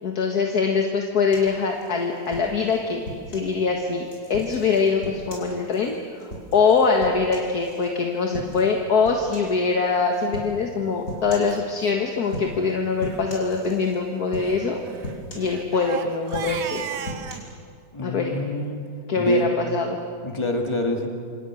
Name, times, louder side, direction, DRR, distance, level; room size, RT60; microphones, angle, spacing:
voice 1, 0.0-3.0 3.3-14.8 15.3-17.1 18.0-18.3 19.1-20.0, left 4 dB, 65° left, 2 dB, 2.1 m, -23 dB
sound 1, 1.3-3.5 4.1-7.9 8.3-8.7 9.0-9.6 10.3-10.6 11.1-11.6 12.2-12.7 13.0-14.0 14.3-14.7 15.0-15.9 16.2-17.3, equal, 50° left, 5.8 m, -37 dB
Crying sobbing, 10.6-10.8 11.5-11.6 11.8-12.0 12.3-12.5 13.0-13.2 14.4-17.4, right 8 dB, 80° right, 1.7 m, -36 dB
voice 2, 17.9-18.9 19.2-19.5 20.2-21.1, equal, 15° left, 2 dB, 2.5 m, -26 dB
27.5 x 27.0 x 6.3 m, 2.2 s
omnidirectional pair, 1.8 m